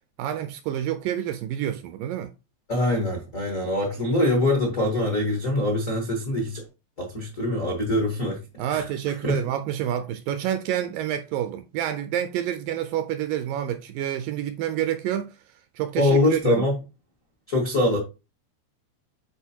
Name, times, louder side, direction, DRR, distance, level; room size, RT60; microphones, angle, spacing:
voice 1, 0.2-2.3 8.6-15.4 15.8-16.7, right 11 dB, 80° right, 2.0 m, -28 dB
voice 2, 2.7-6.6 7.0-8.4 8.7-9.4 16.0-16.7 17.5-18.0, left 1 dB, 85° left, 0.7 m, -24 dB
9.6 x 4.2 x 2.8 m
omnidirectional pair, 4.3 m